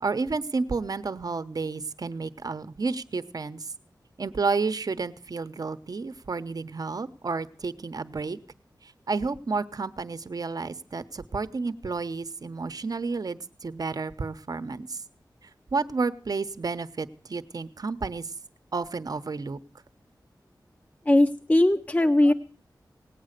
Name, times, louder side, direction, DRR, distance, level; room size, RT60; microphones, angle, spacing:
voice 1, 0.0-3.7 4.2-8.4 8.8-15.0 15.7-18.3 18.7-19.6, right 4 dB, 55° right, 12 dB, 0.9 m, -31 dB
voice 2, 21.0-22.3, left 1 dB, 20° left, 7 dB, 0.7 m, -20 dB
18.5 x 8.8 x 6.5 m, 0.44 s
wide cardioid pair, 90°, 7 cm